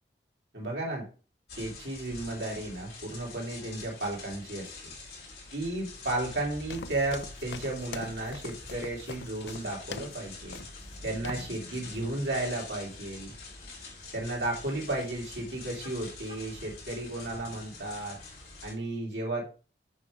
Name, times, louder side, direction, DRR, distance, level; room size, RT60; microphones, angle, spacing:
voice 1, 0.5-1.1 1.6-4.9 5.5-10.6 11.0-13.3 14.1-18.2 18.6-19.4, right 2 dB, 85° right, -1 dB, 2.7 m, -34 dB
sound 1, 1.5-18.7, left 3 dB, 60° left, 3.6 m, -45 dB
sound 2, 6.7-10.2 10.5-11.0 11.2-11.5, left 5 dB, 85° left, 0.5 m, -43 dB
7.4 x 5.0 x 4.8 m, 0.37 s
head